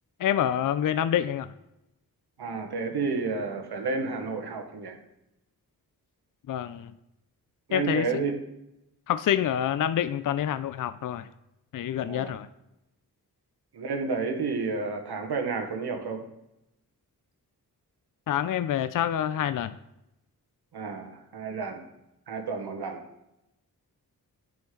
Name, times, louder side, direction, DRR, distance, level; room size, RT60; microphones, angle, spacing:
voice 1, 0.2-1.5 6.5-6.9 7.7-8.1 9.1-11.3 11.7-12.5 18.3-19.7, left 10 dB, 55° left, 13 dB, 0.4 m, -27 dB
voice 2, 2.4-5.0 7.7-8.3 12.0-12.3 13.7-16.2 20.7-21.8 22.3-23.0, right 4 dB, 80° right, 4 dB, 1.3 m, -31 dB
11.5 x 5.1 x 3.8 m, 0.89 s
cardioid pair, 70°, 38 cm